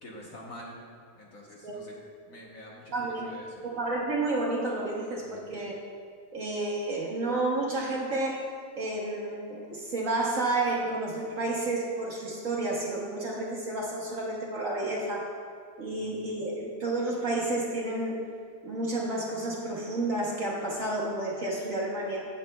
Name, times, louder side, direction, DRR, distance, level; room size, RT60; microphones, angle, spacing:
voice 1, 0.0-0.8 1.2-2.0 2.3-3.6 5.3-5.5 15.9-16.1, equal, 50° left, -3 dB, 1.5 m, -47 dB
voice 2, 2.9-3.3 3.6-5.8 6.3-8.4 8.7-15.3 15.8-18.2 18.6-22.3, right 2 dB, 50° right, -3 dB, 1.2 m, -31 dB
16.5 x 7.2 x 2.3 m, 2.1 s
omnidirectional pair, 2.1 m